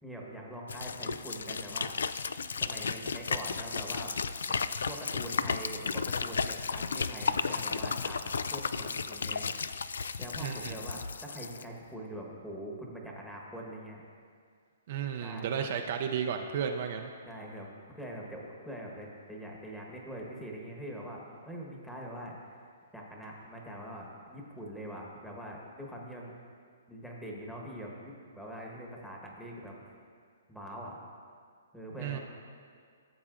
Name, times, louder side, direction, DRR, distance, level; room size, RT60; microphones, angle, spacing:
voice 1, 0.0-2.0 2.6-4.1 4.5-4.6 4.9-9.7 10.2-14.0 15.2-15.7 17.3-22.6 22.9-26.3 26.9-29.9 30.5-31.0 31.7-32.2, equal, 5° left, -3 dB, 1.2 m, -43 dB
sound 1, 0.7-11.6, left 5 dB, 85° left, 0.3 m, -34 dB
voice 2, 10.4-10.8 14.9-17.1 32.0-32.2, right 7 dB, 50° right, 4 dB, 0.5 m, -33 dB
14.0 x 7.1 x 2.5 m, 2.1 s
hypercardioid pair, 145°, 0 cm